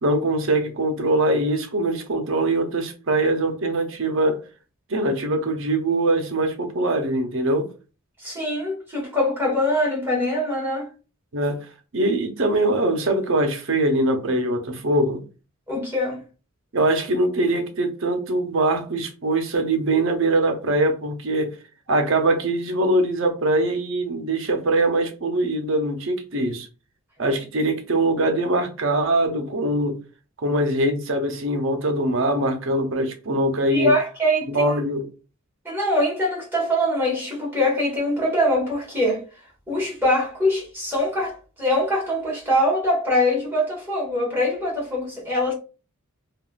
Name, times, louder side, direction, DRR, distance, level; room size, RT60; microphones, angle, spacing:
voice 1, 0.0-4.4 4.9-7.7 11.3-11.6 11.9-15.2 16.7-21.5 21.9-26.7 27.2-30.0 30.4-33.9 34.5-35.1, right 1 dB, 60° right, 0.6 m, -22 dB
voice 2, 8.2-10.9 15.7-16.2 33.7-34.6 35.6-39.2 39.7-45.5, left 1 dB, 10° right, 1.3 m, -23 dB
3.5 x 2.3 x 2.3 m
head